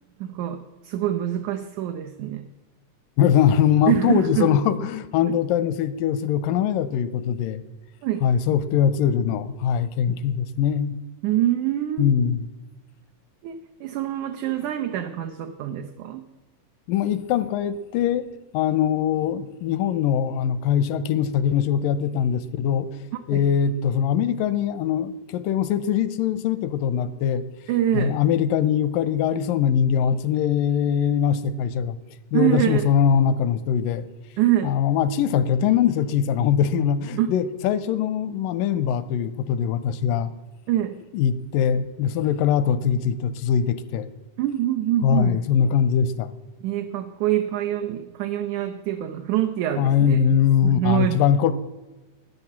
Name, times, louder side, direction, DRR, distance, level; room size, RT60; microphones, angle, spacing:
voice 1, 0.2-2.5 3.9-4.6 8.0-8.3 11.2-12.1 13.4-16.2 23.1-23.4 27.7-28.2 32.3-32.9 34.4-34.8 37.2-37.3 40.7-41.0 44.4-45.4 46.6-50.2 50.6-51.2, right 12 dB, 75° right, 4 dB, 1.8 m, -25 dB
voice 2, 3.2-7.6 8.2-10.9 12.0-12.5 16.9-18.3 18.5-27.4 27.9-32.0 32.3-34.0 34.6-40.3 41.1-44.1 45.0-46.3 49.8-51.5, left 8 dB, 85° left, 14 dB, 2.2 m, -22 dB
11.0 x 9.9 x 7.3 m, 1.2 s
omnidirectional pair, 3.9 m